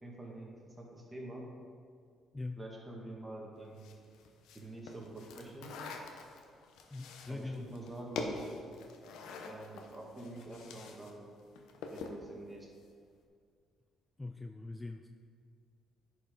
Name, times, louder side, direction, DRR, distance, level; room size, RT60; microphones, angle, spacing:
voice 1, 0.0-1.5 2.6-4.0 4.5-5.7 7.3-8.5 9.5-11.3 11.9-12.7, right 2 dB, 20° right, -1 dB, 1.8 m, -47 dB
sound 1, 3.8-11.1 11.4-12.2, left 4 dB, 80° left, 0.8 m, -45 dB
voice 2, 6.9-7.7 14.2-15.1, left 2 dB, 15° left, 6 dB, 0.4 m, -42 dB
10.5 x 4.9 x 3.8 m, 2.1 s
cardioid pair, 80°, 0 cm